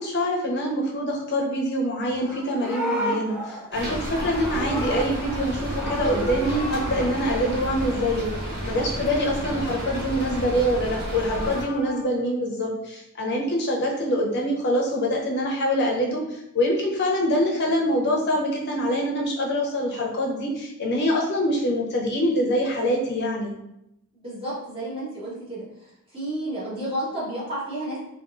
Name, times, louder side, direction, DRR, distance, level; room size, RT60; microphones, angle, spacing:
voice 1, 0.0-8.3 8.6-16.2 16.5-23.5, equal, 50° left, -2 dB, 0.8 m, -25 dB
Livestock farm animals working animals, 2.1-5.5 5.8-7.1 10.8-12.0, equal, 5° right, 0.7 m, -32 dB
Rain, 3.7-11.6, right 1 dB, 50° right, 1.0 m, -31 dB
voice 2, 24.1-25.6 26.1-28.0, right 1 dB, 25° right, -9 dB, 1.2 m, -31 dB
3.7 x 2.5 x 2.5 m, 0.82 s
head